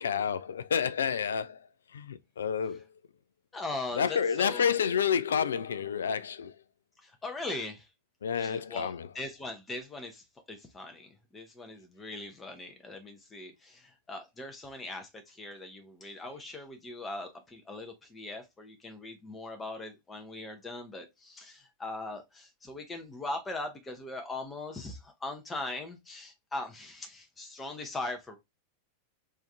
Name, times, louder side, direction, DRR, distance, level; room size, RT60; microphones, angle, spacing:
voice 1, 0.0-1.7 1.9-2.8 4.0-6.5 8.2-9.1, left 7 dB, 65° left, 0.3 m, -29 dB
voice 2, 3.5-4.7 7.0-7.9 8.3-28.4, left 2 dB, 15° left, 0.8 m, -40 dB
3.5 x 2.7 x 3.4 m
figure-of-eight pair, 90°, 0 cm